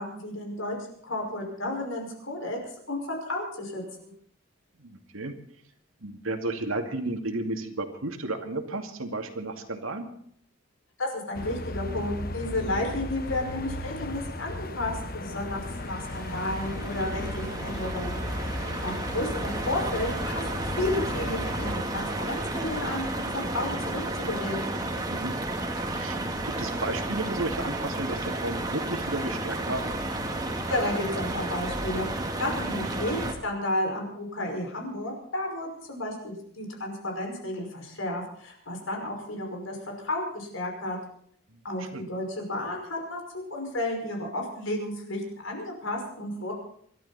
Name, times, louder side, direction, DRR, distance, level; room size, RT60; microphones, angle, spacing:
voice 1, 0.0-2.6 2.9-4.1 11.0-18.2 18.8-20.4 20.8-24.7 30.7-39.8 40.0-41.0 41.6-46.5, left 1 dB, 75° left, 1 dB, 5.6 m, -32 dB
voice 2, 4.8-5.3 6.0-10.1 25.1-25.3 25.9-26.2 26.5-29.9 41.5-42.0, right 2 dB, 85° right, 5 dB, 2.5 m, -33 dB
sound 1, 11.4-21.8, left 1 dB, 45° left, 1.1 m, -35 dB
sound 2, 15.4-33.3, right 2 dB, 20° right, 2.0 m, -32 dB
26.5 x 12.5 x 4.2 m, 0.63 s
head